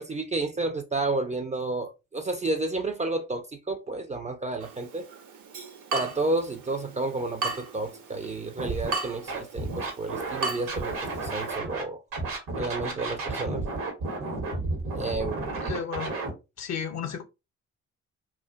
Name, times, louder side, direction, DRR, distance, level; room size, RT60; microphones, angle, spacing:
voice 1, 0.0-5.1 5.9-10.9 11.2-12.0 12.6-13.6 14.9-15.6, right 2 dB, 20° right, 0.4 m, -31 dB
Water tap faucet / Drip, 4.6-11.6, right 3 dB, 55° right, 0.7 m, -37 dB
Scratching (performance technique), 8.6-8.9 9.3-11.8 12.1-16.3, right 3 dB, 70° right, 1.0 m, -32 dB
voice 2, 15.5-16.1 16.6-17.2, left 7 dB, 50° left, 0.6 m, -33 dB
2.4 x 2.2 x 2.3 m
hypercardioid pair, 40°, 36 cm